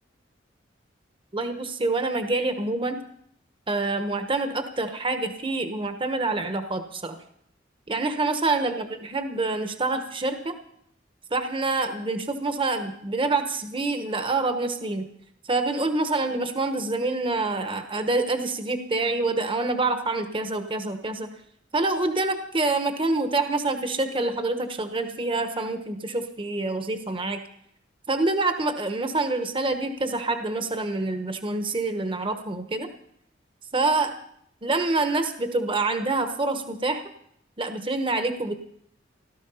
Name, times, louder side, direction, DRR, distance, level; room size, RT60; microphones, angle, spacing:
voice 1, 1.3-3.0 3.7-7.2 7.9-10.5 11.3-15.1 15.5-21.3 21.7-27.4 28.1-32.9 33.7-34.2 34.6-37.0 37.6-38.6, right 3 dB, 30° right, 7 dB, 1.1 m, -26 dB
17.0 x 13.0 x 5.6 m, 0.70 s
head